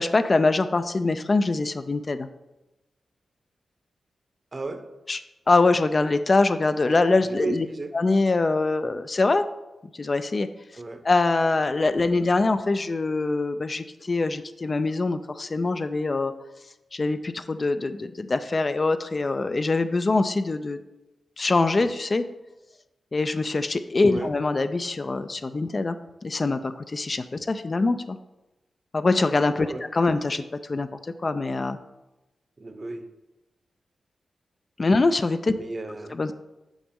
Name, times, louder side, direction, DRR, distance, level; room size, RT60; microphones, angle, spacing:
voice 1, 0.0-2.3 5.1-5.2 5.5-7.7 7.9-9.4 10.0-10.5 11.0-16.3 16.9-20.8 21.4-22.2 23.1-26.0 26.2-28.2 28.9-29.7 29.9-30.9 31.2-31.8 34.8-35.5 36.1-36.3, left 3 dB, 40° left, 10 dB, 0.3 m, -23 dB
voice 2, 7.3-7.9 10.7-11.0 24.0-24.3 29.6-29.9 32.6-33.0 35.5-36.1, right 3 dB, 35° right, 8 dB, 0.7 m, -33 dB
7.0 x 5.1 x 3.6 m, 0.99 s
cardioid pair, 85°, 0 cm